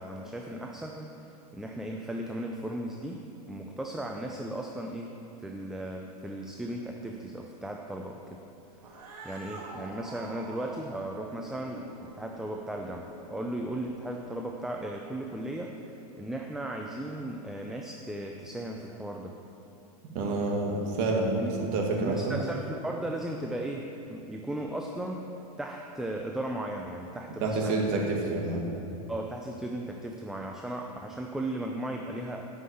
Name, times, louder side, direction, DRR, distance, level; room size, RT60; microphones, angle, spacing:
voice 1, 0.0-3.2 3.5-5.1 5.4-8.4 8.9-9.0 9.2-11.8 12.1-15.7 16.2-19.3 21.4-21.5 22.0-25.3 25.6-27.8 29.1-32.5, right 1 dB, ahead, 1 dB, 0.5 m, -36 dB
Cat, 8.7-14.4, right 2 dB, 90° right, 1.9 m, -46 dB
voice 2, 20.1-22.4 27.4-28.6, right 3 dB, 50° right, -1 dB, 2.0 m, -28 dB
8.2 x 5.8 x 7.9 m, 2.8 s
supercardioid pair, 125°, 20 cm